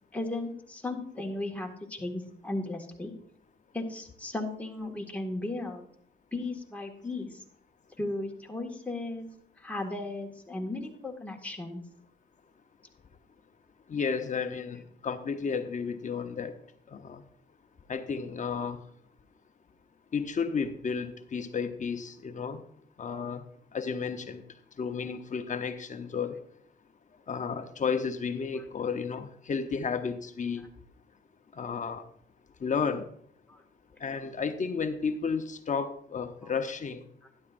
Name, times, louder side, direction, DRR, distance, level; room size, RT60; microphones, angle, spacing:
voice 1, 0.1-3.1 3.7-5.9 6.3-7.4 8.0-9.3 9.6-11.8 36.4-36.5, left 2 dB, 5° left, 0 dB, 1.9 m, -35 dB
voice 2, 13.9-16.6 16.9-17.2 17.9-18.8 20.1-22.6 23.0-23.4 23.7-24.4 24.8-26.4 27.3-30.7 31.5-32.0 32.6-33.1 34.0-37.1, left 5 dB, 40° left, 8 dB, 0.9 m, -32 dB
12.0 x 10.5 x 2.6 m, 0.64 s
cardioid pair, 90°, 20 cm